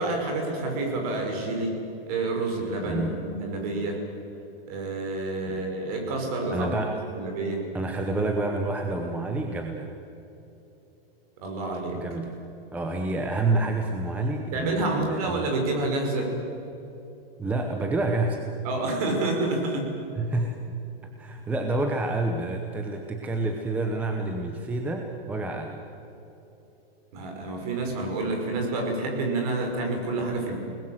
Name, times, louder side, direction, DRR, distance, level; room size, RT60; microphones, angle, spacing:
voice 1, 0.0-1.8 2.1-4.0 4.7-6.8 7.1-7.6 11.4-12.0 14.5-16.3 18.6-19.9 27.1-30.6, right 2 dB, 40° right, 2 dB, 5.7 m, -28 dB
voice 2, 2.8-3.2 5.5-5.6 6.5-7.0 7.7-9.9 11.9-12.3 12.7-15.5 17.4-18.5 20.2-20.8 21.0-25.8, right 2 dB, 5° right, 3 dB, 0.8 m, -28 dB
29.0 x 20.0 x 7.9 m, 3.0 s
supercardioid pair, 170°, 30 cm